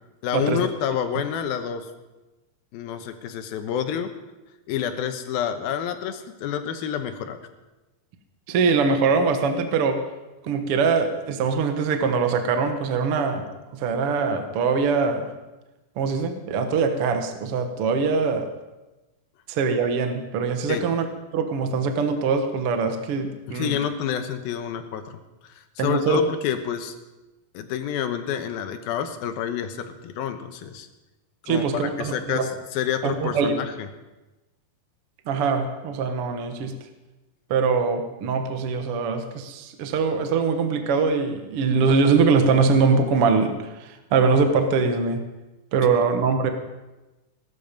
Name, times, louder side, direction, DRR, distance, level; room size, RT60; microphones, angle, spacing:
voice 1, 0.2-1.9 2.7-4.1 4.7-7.4 20.7-20.8 23.5-25.2 25.8-26.9 27.5-30.9 31.5-33.9 46.0-46.1, left 8 dB, 85° left, 8 dB, 2.9 m, -28 dB
voice 2, 8.5-10.0 10.4-15.3 16.0-18.5 19.5-21.1 21.3-23.8 25.8-26.2 31.5-32.5 33.0-33.6 35.3-36.7 37.5-45.2 45.7-46.5, right 5 dB, 60° right, 6 dB, 1.6 m, -22 dB
17.0 x 12.5 x 5.2 m, 1.1 s
omnidirectional pair, 4.2 m